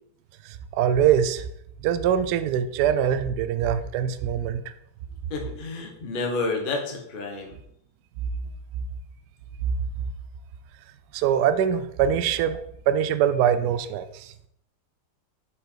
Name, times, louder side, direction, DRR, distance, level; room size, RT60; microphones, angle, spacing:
voice 1, 0.5-1.5 1.8-4.6 11.1-14.3, right 9 dB, 85° right, 10 dB, 0.9 m, -23 dB
voice 2, 5.3-7.5, left 3 dB, 35° left, 2 dB, 0.8 m, -30 dB
5.2 x 4.9 x 4.4 m, 0.73 s
omnidirectional pair, 2.3 m